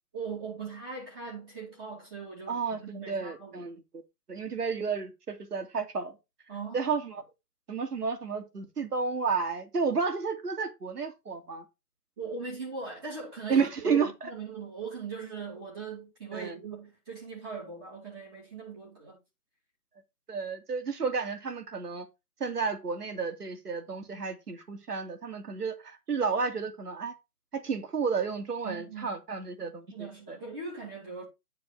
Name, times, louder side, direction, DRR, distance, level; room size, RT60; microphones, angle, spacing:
voice 1, 0.1-3.6 6.5-6.9 8.0-8.1 12.2-19.2 28.6-29.2 29.9-31.2, right 5 dB, 15° right, 2.4 m, -40 dB
voice 2, 2.5-3.8 4.3-6.2 6.7-7.2 7.7-11.6 13.5-14.1 16.3-16.5 20.3-22.1 22.4-27.1 27.5-30.4, right 5 dB, 70° right, 2.7 m, -31 dB
10.5 x 4.7 x 5.1 m
hypercardioid pair, 170°, 48 cm